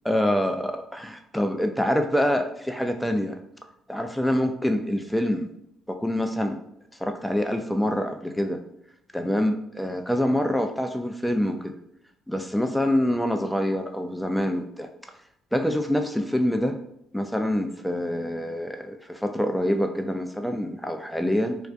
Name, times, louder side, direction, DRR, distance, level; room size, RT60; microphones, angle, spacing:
voice 1, 0.0-3.4 3.9-5.5 5.9-6.6 7.0-8.6 9.1-11.8 12.3-14.9 15.5-16.8 17.1-21.6, equal, 5° left, 6 dB, 0.4 m, -26 dB
2.3 x 2.1 x 2.5 m, 0.77 s
hypercardioid pair, 50°, 0 cm